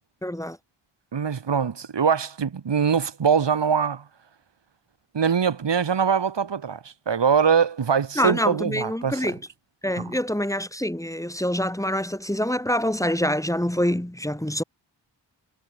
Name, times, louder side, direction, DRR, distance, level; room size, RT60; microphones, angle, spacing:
voice 1, 0.2-0.6 8.1-9.4 9.8-14.6, equal, 5° left, 4.8 m, -25 dB
voice 2, 1.1-4.0 5.1-9.3 10.0-10.1, right 6 dB, 70° right, 7.1 m, -23 dB
cardioid pair, 60°, 44 cm